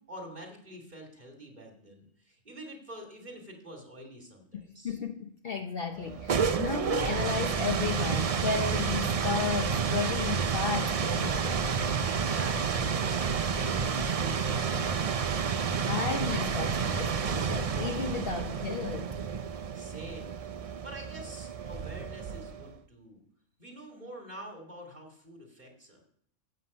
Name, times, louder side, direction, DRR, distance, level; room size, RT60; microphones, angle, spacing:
voice 1, 0.0-5.0 12.0-15.4 19.7-23.2 23.6-26.0, right 1 dB, 35° right, 1 dB, 2.6 m, -46 dB
voice 2, 4.5-11.6 15.9-19.1, left 6 dB, 50° left, 5 dB, 0.9 m, -34 dB
sound 1, 6.0-22.7, right 6 dB, 60° right, 0.3 m, -30 dB
15.0 x 7.9 x 5.5 m, 0.65 s
omnidirectional pair, 1.4 m